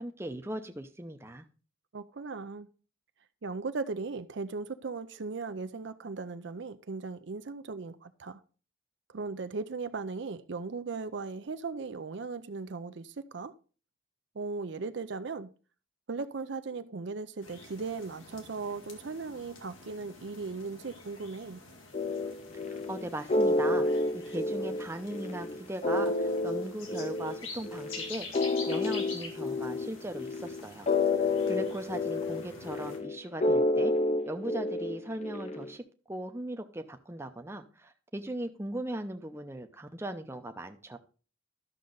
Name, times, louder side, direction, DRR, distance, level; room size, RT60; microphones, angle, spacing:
voice 1, 0.0-1.5 22.7-28.3 28.7-33.9 34.3-41.0, right 1 dB, 10° right, 0.7 m, -39 dB
voice 2, 1.9-2.7 3.4-8.4 9.1-13.5 14.3-15.5 16.1-21.6, right 4 dB, 60° right, 0.5 m, -37 dB
sound 1, 17.4-33.0, left 3 dB, 85° left, 2.1 m, -47 dB
sound 2, 21.9-35.7, left 2 dB, 35° left, 0.7 m, -30 dB
12.5 x 6.5 x 3.9 m
head